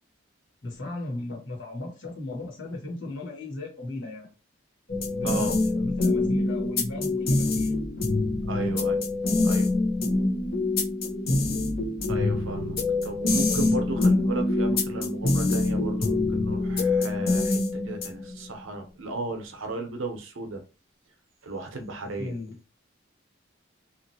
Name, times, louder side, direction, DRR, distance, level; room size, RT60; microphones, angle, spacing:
voice 1, 0.6-4.3 5.1-7.7 8.5-8.8 13.5-13.8 22.2-22.6, left 2 dB, 70° left, 1.4 m, -36 dB
sound 1, 4.9-18.3, left 2 dB, 50° left, 0.7 m, -25 dB
voice 2, 5.2-5.6 8.5-9.0 9.4-9.7 12.1-20.6 21.4-22.3, right 2 dB, 85° right, 0.7 m, -35 dB
2.8 x 2.5 x 2.7 m
head